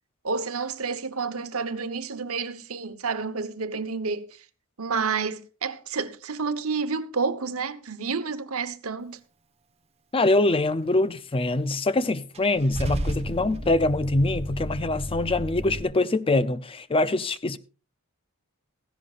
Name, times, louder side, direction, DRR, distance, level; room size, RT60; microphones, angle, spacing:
voice 1, 0.2-4.4 4.8-9.2, right 5 dB, 75° right, 1.1 m, -30 dB
voice 2, 10.1-17.6, left 2 dB, 25° left, 0.5 m, -24 dB
Car / Engine starting / Idling, 12.3-15.8, equal, 30° right, 1.1 m, -32 dB
16.5 x 15.5 x 2.5 m
head